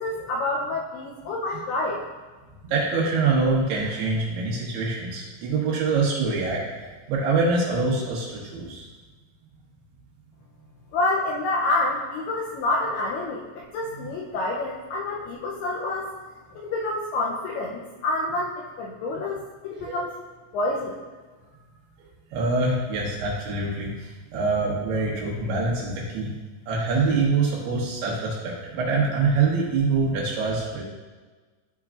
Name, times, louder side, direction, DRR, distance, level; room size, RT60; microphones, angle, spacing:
voice 1, 0.0-2.0 10.9-16.1 16.6-19.4 19.6-20.1 20.5-21.0, left 2 dB, 85° left, -3 dB, 2.3 m, -28 dB
voice 2, 2.7-6.6 7.1-8.9 19.9-20.0 22.3-26.3 26.7-30.8, right 3 dB, 70° right, -4 dB, 3.0 m, -24 dB
13.0 x 4.7 x 2.4 m, 1.3 s
omnidirectional pair, 5.3 m